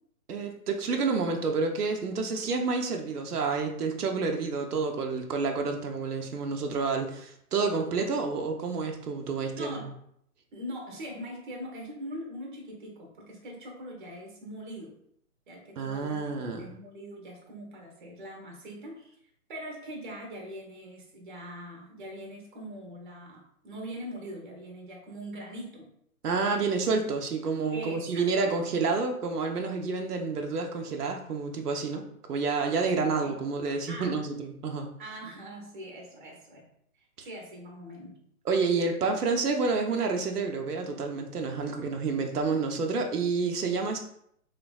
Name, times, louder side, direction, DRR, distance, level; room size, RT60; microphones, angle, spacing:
voice 1, 0.3-9.8 15.8-16.7 26.2-32.0 32.3-34.9 38.5-44.0, right 4 dB, 90° right, 3 dB, 0.6 m, -29 dB
voice 2, 9.5-9.9 10.5-15.0 15.5-19.1 19.5-25.9 26.5-26.9 27.7-28.6 33.2-33.3 33.9-34.2 35.0-36.7 36.9-38.2, equal, 35° right, 0 dB, 0.7 m, -42 dB
3.2 x 2.2 x 2.3 m, 0.70 s
hypercardioid pair, 145°, 45 cm